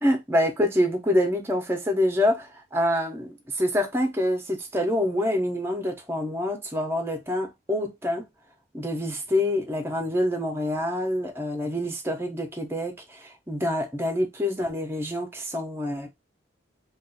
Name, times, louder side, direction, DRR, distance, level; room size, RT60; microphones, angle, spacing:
voice 1, 0.0-8.2 8.7-16.1, left 1 dB, 10° right, 0.7 m, -26 dB
2.5 x 2.3 x 4.0 m
head